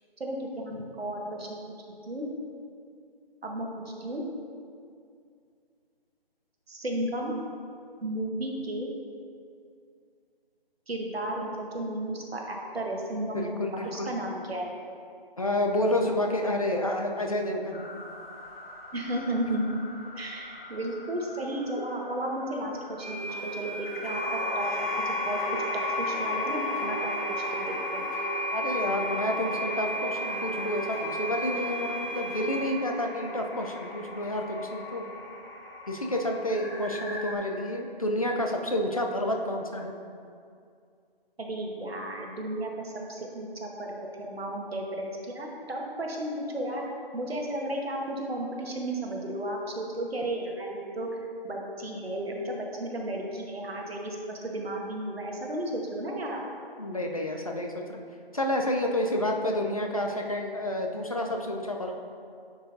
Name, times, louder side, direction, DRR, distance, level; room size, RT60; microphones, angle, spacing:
voice 1, 0.2-1.6 2.1-2.3 3.4-4.2 6.7-7.4 8.0-8.9 10.9-13.6 13.8-14.7 18.9-19.8 20.2-25.4 26.0-27.1 27.5-28.0 41.4-46.8 47.1-51.1 51.4-56.4, right 1 dB, 80° right, 0 dB, 1.3 m, -33 dB
voice 2, 13.2-14.1 15.4-17.9 28.5-35.0 35.9-39.9 56.8-58.0 58.3-61.9, left 1 dB, 40° left, 2 dB, 0.4 m, -29 dB
sound 1, 17.7-37.3, left 3 dB, 70° left, 1.2 m, -37 dB
sound 2, 23.0-32.6, right 2 dB, 20° right, 1.4 m, -35 dB
10.0 x 4.6 x 2.6 m, 2.4 s
figure-of-eight pair, 165°, 30 cm